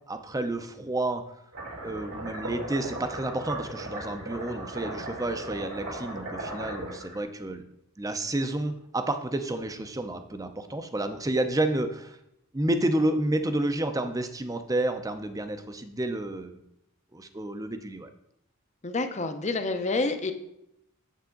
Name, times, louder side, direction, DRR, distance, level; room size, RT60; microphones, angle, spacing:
voice 1, 0.1-1.2 1.8-7.6 8.0-12.2 12.5-16.6 17.1-18.1, right 1 dB, 15° right, 8 dB, 0.6 m, -30 dB
sound 1, 1.5-7.1, right 1 dB, 90° right, 3.0 m, -37 dB
voice 2, 18.8-20.3, left 3 dB, 30° left, 8 dB, 0.7 m, -28 dB
8.3 x 7.6 x 3.8 m, 0.81 s
head